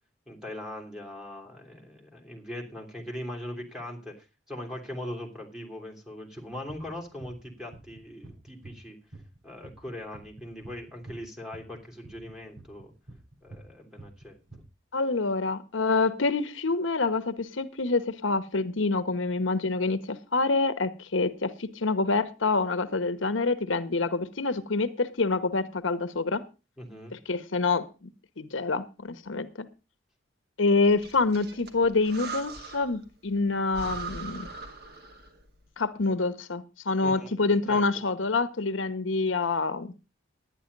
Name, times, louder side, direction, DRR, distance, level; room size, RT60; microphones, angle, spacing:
voice 1, 0.3-9.0 9.4-12.9 13.4-14.4 26.8-27.1 37.0-37.4 37.7-37.8, left 1 dB, 5° right, -2 dB, 3.2 m, -40 dB
sound 1, 6.4-8.9 9.1-11.1 11.5-13.7 14.0-14.6, right 2 dB, 90° right, 7.4 m, -47 dB
voice 2, 14.9-26.4 27.1-28.1 28.4-29.7 30.6-34.5 35.8-39.9, left 3 dB, 80° left, 13 dB, 0.9 m, -27 dB
Breathing, 30.8-33.0 33.4-33.5 33.7-35.4, right 4 dB, 50° right, 2.1 m, -40 dB
11.5 x 9.8 x 5.3 m, 0.31 s
head